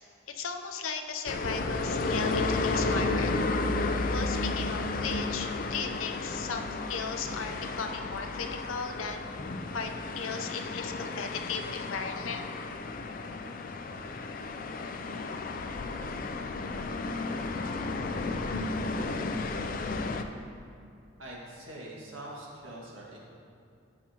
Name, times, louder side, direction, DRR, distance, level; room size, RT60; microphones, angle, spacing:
voice 1, 0.3-3.3 4.1-6.6 6.9-9.2 9.7-12.5, left 5 dB, 90° left, 5 dB, 0.6 m, -36 dB
sound 1, 1.3-20.2, left 3 dB, 45° left, 0.3 m, -32 dB
voice 2, 21.2-23.2, right 1 dB, 80° right, -4 dB, 1.7 m, -43 dB
11.0 x 6.2 x 2.9 m, 2.5 s
head